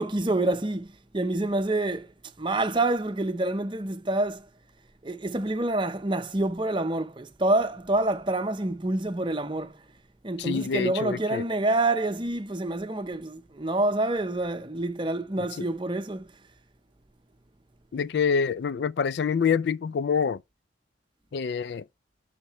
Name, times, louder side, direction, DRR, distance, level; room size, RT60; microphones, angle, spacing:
voice 1, 0.0-2.1 2.4-4.5 5.0-9.8 10.2-16.3, right 2 dB, 25° right, 0.7 m, -27 dB
voice 2, 10.4-11.4 17.9-20.4 21.3-21.9, left 6 dB, 65° left, 0.3 m, -26 dB
6.5 x 5.9 x 3.0 m
head